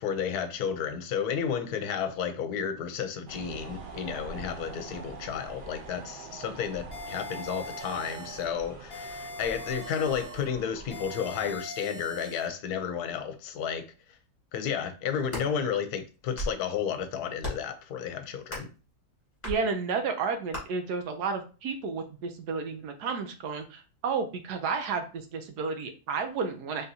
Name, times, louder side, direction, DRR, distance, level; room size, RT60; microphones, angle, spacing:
voice 1, 0.0-13.9 14.5-18.7, left 7 dB, 75° left, 1.1 m, -32 dB
sound 1, 3.3-11.6, right 3 dB, 45° right, 0.7 m, -44 dB
sound 2, 6.9-8.5 8.9-10.5 10.9-12.5, equal, 35° left, 1.3 m, -42 dB
sound 3, 15.1-15.5 16.1-16.7 17.4-17.7 18.5-18.8 19.4-19.6 20.5-20.6, left 1 dB, 20° left, 1.9 m, -35 dB
voice 2, 19.4-26.8, right 5 dB, 80° right, 1.3 m, -32 dB
3.9 x 3.7 x 2.7 m
omnidirectional pair, 1.7 m